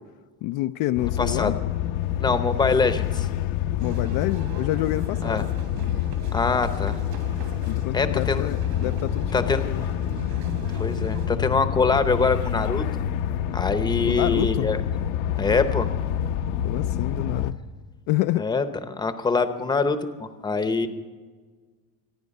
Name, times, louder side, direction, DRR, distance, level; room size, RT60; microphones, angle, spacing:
voice 1, 0.4-1.6 3.8-5.5 7.7-9.9 14.1-14.7 16.6-17.6 18.1-18.5, left 16 dB, 50° left, 9 dB, 0.4 m, -28 dB
sound 1, 1.0-17.5, left 10 dB, 80° left, 1.0 m, -27 dB
voice 2, 1.2-1.5 2.2-3.3 5.2-5.4 6.3-7.0 7.9-8.5 9.3-9.6 10.8-13.0 13.5-14.8 15.4-15.9 18.4-20.9, left 4 dB, 10° left, 9 dB, 0.8 m, -24 dB
sound 2, 3.8-11.3, right 7 dB, 55° right, 2.4 m, -42 dB
26.5 x 9.5 x 5.4 m, 1.4 s
cardioid pair, 145°, 43 cm